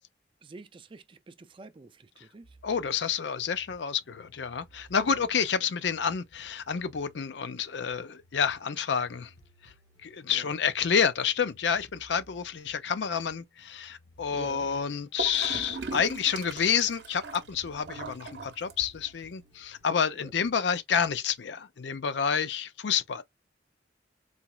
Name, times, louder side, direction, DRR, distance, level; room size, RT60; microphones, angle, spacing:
voice 1, 0.4-2.6 5.1-5.3 10.3-10.5 14.3-14.7 20.1-20.3, right 3 dB, 30° right, 0.4 m, -47 dB
sound 1, 2.4-20.6, equal, 90° left, 1.3 m, -60 dB
voice 2, 2.6-9.3 9.6-9.7 10.0-23.2, left 7 dB, 75° left, 0.5 m, -29 dB
Gurgling / Toilet flush, 15.2-19.2, right 4 dB, 70° right, 0.7 m, -39 dB
4.1 x 2.9 x 2.3 m
head